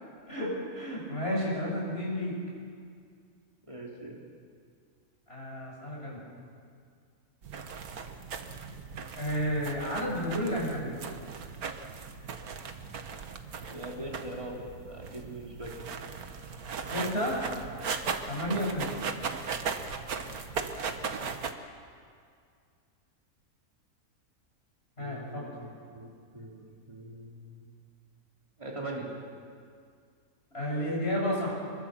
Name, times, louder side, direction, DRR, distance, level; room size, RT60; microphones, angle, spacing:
voice 1, 0.3-2.4 5.3-6.2 9.2-11.0 16.9-17.4 18.3-19.0 25.0-25.5 30.5-31.5, equal, 45° left, -3 dB, 7.5 m, -31 dB
voice 2, 3.7-4.2 13.7-14.6 14.8-15.8 25.0-27.7 28.6-29.1, right 1 dB, 20° right, -2 dB, 3.5 m, -42 dB
sound 1, 7.4-21.5, right 5 dB, 85° right, 1.8 m, -38 dB
26.0 x 22.5 x 7.6 m, 2.2 s
omnidirectional pair, 1.5 m